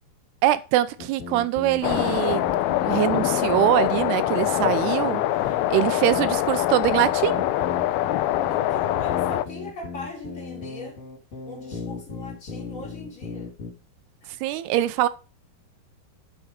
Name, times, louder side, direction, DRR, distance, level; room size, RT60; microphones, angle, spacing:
voice 1, 0.4-2.4 2.8-5.2 5.7-7.5 14.4-15.1, right 14 dB, 90° right, 2.8 m, -23 dB
sound 1, 1.0-13.7, left 5 dB, 40° left, 2.8 m, -36 dB
sound 2, 1.8-9.4, left 14 dB, 80° left, 2.5 m, -24 dB
voice 2, 5.3-5.7 8.5-11.0 11.5-13.5 14.2-14.3, left 2 dB, 20° left, 3.5 m, -40 dB
7.9 x 7.3 x 5.1 m
omnidirectional pair, 4.5 m